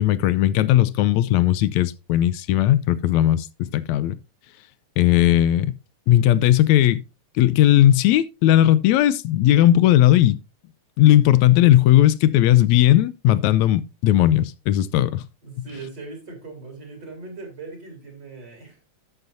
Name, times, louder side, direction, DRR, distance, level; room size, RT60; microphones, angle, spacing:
voice 1, 0.0-4.2 5.0-5.7 6.1-7.0 7.4-10.4 11.0-15.2, left 13 dB, 80° left, 1.9 m, -17 dB
voice 2, 15.4-18.8, right 3 dB, 35° right, 4.0 m, -39 dB
12.0 x 7.9 x 2.7 m
omnidirectional pair, 3.3 m